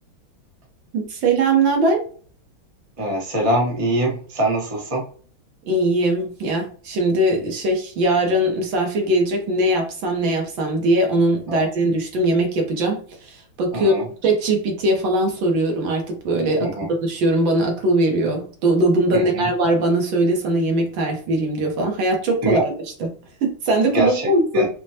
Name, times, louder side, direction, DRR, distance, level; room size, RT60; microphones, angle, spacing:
voice 1, 0.9-2.0 5.7-22.7 23.0-23.1 23.4-24.7, right 1 dB, 70° right, 2 dB, 1.5 m, -20 dB
voice 2, 3.0-5.0 11.5-11.6 13.7-14.0 16.6-16.9 19.1-19.5 22.4-22.6 23.9-24.7, right 1 dB, 25° right, -2 dB, 0.7 m, -23 dB
5.3 x 2.1 x 2.7 m, 0.43 s
omnidirectional pair, 2.4 m